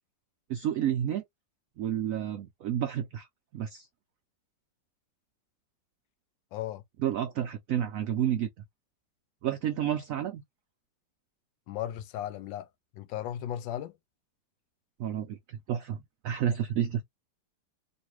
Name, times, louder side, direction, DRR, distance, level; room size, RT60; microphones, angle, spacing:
voice 1, 0.5-1.2 1.8-3.3 3.5-3.9 7.0-8.5 9.4-10.4 15.0-17.0, right 10 dB, 85° right, 0.7 m, -30 dB
voice 2, 6.5-6.8 11.7-12.7 12.9-13.9, left 11 dB, 85° left, 1.3 m, -36 dB
3.1 x 2.6 x 3.0 m
omnidirectional pair, 2.0 m